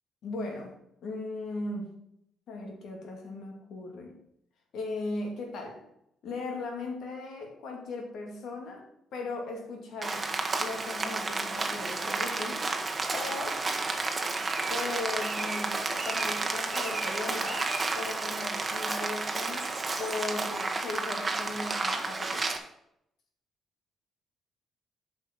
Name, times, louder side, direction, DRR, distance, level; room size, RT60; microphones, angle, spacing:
voice 1, 0.2-0.8 1.0-2.0 2.5-4.2 4.7-5.8 6.2-8.8 9.1-10.3 10.6-12.6 13.1-13.6 14.7-22.5, left 3 dB, 70° left, 1 dB, 2.5 m, -37 dB
Rain, 10.0-22.6, right 3 dB, 25° right, 1.2 m, -31 dB
8.5 x 5.7 x 6.0 m, 0.78 s
cardioid pair, 90°, 0 cm